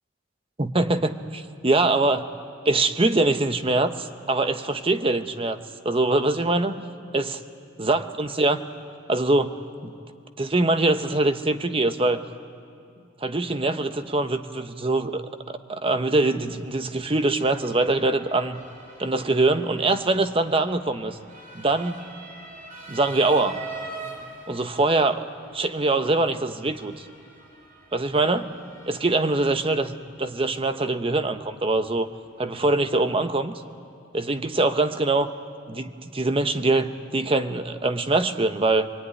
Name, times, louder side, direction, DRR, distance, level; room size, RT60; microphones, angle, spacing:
voice 1, 0.6-2.3 2.6-5.6 5.8-6.8 7.1-7.4 7.8-8.6 9.1-9.9 10.4-12.2 13.2-15.3 15.7-18.6 19.0-21.2 21.5-22.0 22.9-23.6 24.5-25.2 25.5-27.1 27.9-28.5 28.9-32.1 32.4-33.5 34.1-35.3 35.7-38.9, right 2 dB, 30° right, 8 dB, 0.9 m, -23 dB
Motor vehicle (road) / Siren, 15.9-33.3, right 2 dB, 45° right, 3.3 m, -45 dB
27.5 x 22.0 x 9.6 m, 2.3 s
head